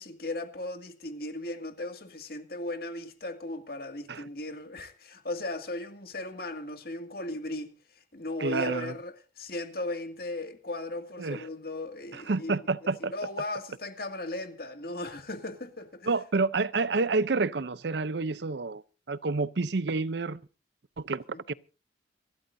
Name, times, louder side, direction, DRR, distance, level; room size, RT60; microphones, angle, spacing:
voice 1, 0.0-7.7 8.1-12.5 13.1-16.1 21.3-21.4, left 2 dB, 55° left, 2.2 m, -37 dB
voice 2, 8.4-8.9 11.2-11.4 12.1-13.1 16.1-18.8 19.1-20.4 21.0-21.5, right 3 dB, 65° right, 0.6 m, -29 dB
27.0 x 13.0 x 2.7 m
head